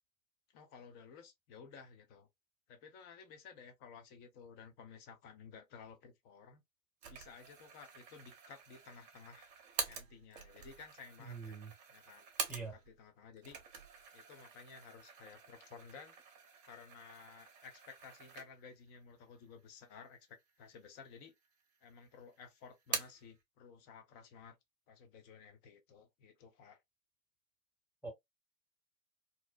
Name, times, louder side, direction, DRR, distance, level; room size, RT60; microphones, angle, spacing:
voice 1, 0.5-2.3 2.7-6.6 7.1-9.5 9.9-11.6 11.9-12.3 12.9-13.6 14.1-16.2 16.6-21.3 21.8-24.6 24.9-26.8, left 6 dB, 25° left, 0.5 m, -55 dB
sound 1, 7.0-13.0 13.3-18.8 19.2-19.3 20.2-20.8 21.1-21.9 22.2-23.3, right 6 dB, 40° right, 0.8 m, -46 dB
voice 2, 11.2-11.7 12.5-12.7 28.0-28.1, right 4 dB, 5° right, 0.9 m, -44 dB
2.5 x 2.0 x 2.4 m
figure-of-eight pair, 100°, 41 cm